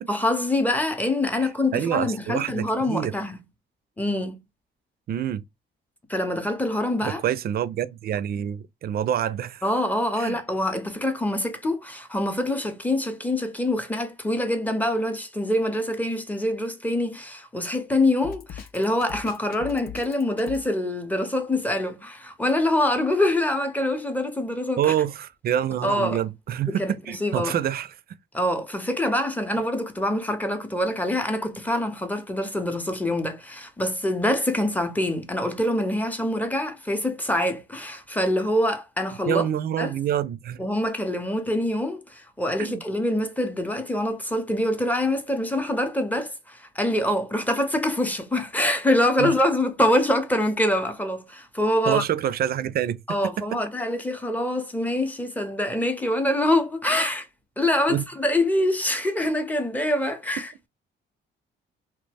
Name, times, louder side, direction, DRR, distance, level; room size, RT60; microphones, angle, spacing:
voice 1, 0.1-3.4 4.0-4.4 6.1-7.2 9.6-24.9 25.8-26.2 26.7-27.5 28.3-39.5 39.8-39.9 40.6-52.0 53.1-57.3 57.6-60.5, left 1 dB, 10° left, 0.6 m, -25 dB
voice 2, 1.7-3.1 5.1-5.4 7.0-9.6 10.2-10.4 24.8-27.9 39.3-40.6 42.6-42.8 49.2-49.3 51.9-53.0 57.9-58.0, right 10 dB, 50° right, 0.4 m, -26 dB
Drum kit, 18.2-20.7, left 9 dB, 50° left, 0.4 m, -39 dB
2.9 x 2.0 x 3.3 m
cardioid pair, 90°, 20 cm